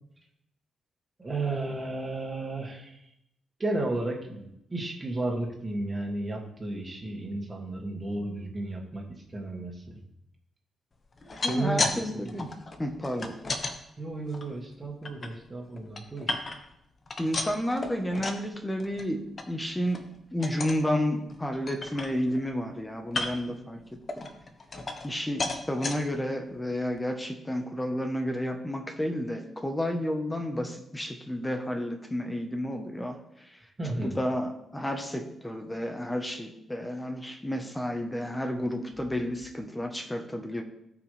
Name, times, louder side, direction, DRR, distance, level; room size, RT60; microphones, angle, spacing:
voice 1, 1.2-3.1 3.6-9.0 9.3-10.0 11.4-12.6 13.1-13.3 14.0-16.4 33.8-34.2, right 2 dB, 20° right, 0 dB, 2.4 m, -33 dB
sound 1, 11.1-12.0 12.3-13.7 14.3-15.3 15.7-16.8 17.1-18.5 18.8-19.1 19.4-19.5 19.9-20.1 20.4-20.8 21.3-21.4 21.7-22.5 23.1-23.5 24.1-25.1 25.4-26.0 26.6-26.7 27.0-27.1, left 3 dB, 35° left, 1.2 m, -33 dB
voice 2, 11.4-12.5 12.8-13.3 17.2-23.8 24.2-24.3 25.0-33.2 33.5-40.6, equal, 10° left, 5 dB, 1.1 m, -31 dB
18.0 x 6.0 x 3.4 m, 0.80 s
cardioid pair, 120°, 0 cm